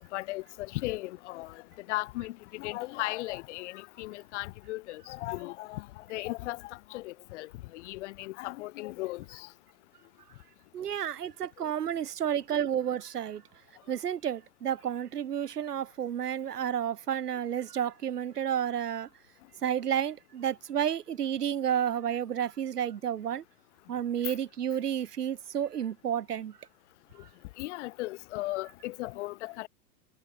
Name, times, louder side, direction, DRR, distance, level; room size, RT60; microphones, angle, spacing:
voice 1, 0.1-9.5 27.6-29.7, left 19 dB, 50° left, 1.9 m, -37 dB
voice 2, 10.7-13.4 13.9-19.1 19.6-23.4 23.9-26.6, right 9 dB, 80° right, 1.8 m, -31 dB
hypercardioid pair, 125°, 46 cm